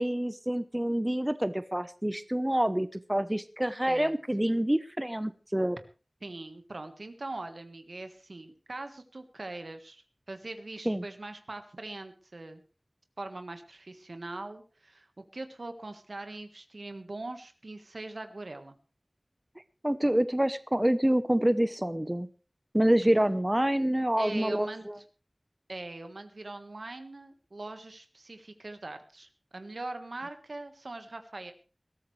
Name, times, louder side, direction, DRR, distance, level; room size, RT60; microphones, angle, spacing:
voice 1, 0.0-5.8 10.9-11.0 19.8-22.3 22.7-24.7, right 1 dB, 20° right, 12 dB, 0.9 m, -27 dB
voice 2, 6.2-12.6 13.2-18.7 24.2-24.8 25.7-31.5, right 2 dB, 90° right, 8 dB, 1.6 m, -42 dB
20.5 x 13.0 x 3.3 m, 0.34 s
wide cardioid pair, 45°, 0 cm